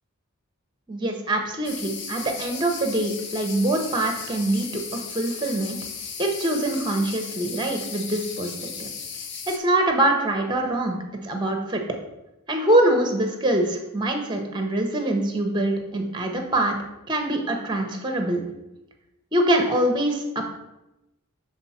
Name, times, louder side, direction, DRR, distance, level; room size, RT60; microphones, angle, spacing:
voice 1, 0.9-5.8 6.2-8.5 8.8-8.9 9.5-11.0 11.2-11.8 12.5-16.8 17.1-18.4 19.3-20.5, right 1 dB, 20° right, 4 dB, 0.8 m, -24 dB
sound 1, 1.6-9.6, left 6 dB, 55° left, 0.7 m, -36 dB
7.0 x 3.9 x 4.2 m, 0.93 s
head